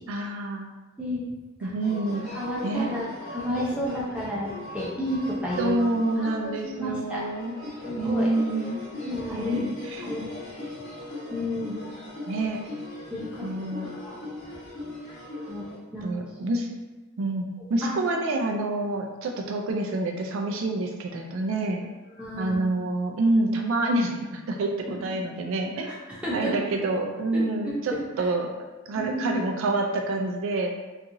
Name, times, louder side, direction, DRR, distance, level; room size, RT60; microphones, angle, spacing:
voice 1, 0.1-0.7 1.6-2.3 2.6-2.9 5.6-7.6 7.9-8.8 9.3-10.0 12.3-12.6 13.4-13.9 16.0-16.7 17.2-21.8 22.4-25.9 26.3-28.5 28.9-30.8, right 2 dB, 75° right, 2 dB, 0.3 m, -27 dB
sound 1, 1.8-15.8, left 1 dB, 85° left, 1.1 m, -39 dB
voice 2, 2.3-5.8 6.2-7.2 7.8-8.3 9.0-9.7 10.0-10.3 11.3-11.8 13.1-13.5 13.8-14.2 15.5-15.6 15.9-16.1 17.8-17.9 22.2-22.6 25.8-26.5 27.3-28.0 28.9-29.6, equal, 5° right, -7 dB, 0.5 m, -31 dB
2.8 x 2.4 x 2.6 m, 1.2 s
head